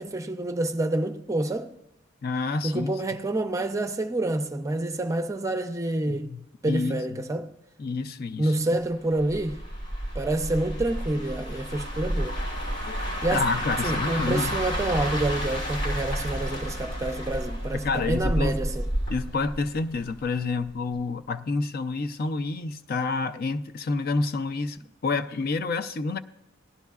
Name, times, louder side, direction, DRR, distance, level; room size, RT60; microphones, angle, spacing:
voice 1, 0.0-1.7 2.6-6.3 6.6-7.5 8.4-9.6 10.1-12.4 13.2-13.4 13.8-18.9, right 2 dB, 15° right, 0.5 m, -28 dB
voice 2, 2.2-2.9 6.1-7.0 7.8-8.5 12.9-13.0 13.3-14.5 17.8-18.6 19.1-26.2, left 3 dB, 50° left, 0.4 m, -28 dB
sound 1, 9.2-20.3 20.6-20.9, equal, 70° left, 3.2 m, -31 dB
18.0 x 11.5 x 2.4 m
head